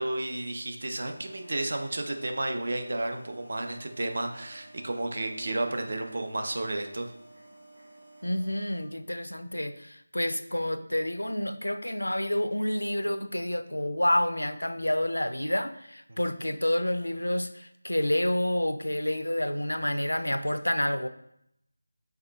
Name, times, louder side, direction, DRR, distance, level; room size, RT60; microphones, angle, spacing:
voice 1, 0.0-7.1 16.1-16.2, right 2 dB, 50° right, 5 dB, 0.6 m, -32 dB
sound 1, 1.0-8.8, right 2 dB, 80° right, 1.0 m, -53 dB
voice 2, 8.2-21.1, left 1 dB, 80° left, 10 dB, 0.4 m, -29 dB
5.7 x 3.8 x 2.3 m, 0.76 s
figure-of-eight pair, 165°, 0 cm